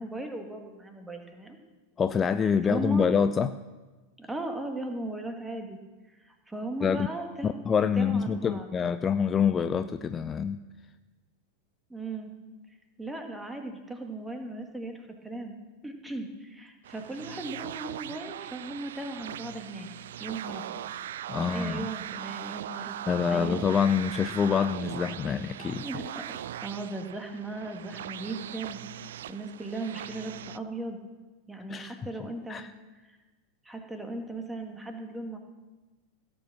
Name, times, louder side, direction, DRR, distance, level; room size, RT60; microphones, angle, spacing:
voice 1, 0.0-1.6 2.7-3.1 4.2-5.8 6.2-7.6 7.9-8.7 11.9-12.3 13.0-15.5 15.8-19.9 20.2-20.8 21.3-23.6 25.8-28.8 29.3-31.0 31.5-32.6 33.1-33.2 33.7-35.4, right 2 dB, 5° right, 4 dB, 1.9 m, -37 dB
voice 2, 2.0-3.5 6.8-7.1 7.4-10.6 21.3-21.9 23.1-25.8 31.7-32.0 32.5-32.7, left 6 dB, 20° left, 12 dB, 0.4 m, -26 dB
sound 1, 16.8-30.6, right 11 dB, 60° right, 0.4 m, -40 dB
17.0 x 8.7 x 6.1 m, 1.2 s
figure-of-eight pair, 90°, 0 cm